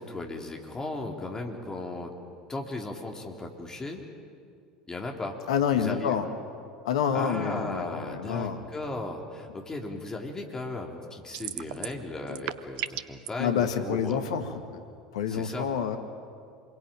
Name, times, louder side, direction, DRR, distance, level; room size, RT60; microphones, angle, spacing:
voice 1, 0.0-2.1 2.5-4.0 4.9-5.4 5.7-6.2 7.1-14.2 15.3-15.7, left 2 dB, 15° left, 1 dB, 3.7 m, -36 dB
voice 2, 5.5-6.3 6.8-8.6 13.4-14.8 15.1-16.0, left 7 dB, 65° left, 7 dB, 1.8 m, -28 dB
sound 1, 11.3-12.0 12.3-13.3, right 13 dB, 55° right, 0.9 m, -34 dB
27.5 x 22.5 x 9.0 m, 2.2 s
figure-of-eight pair, 70°, 4 cm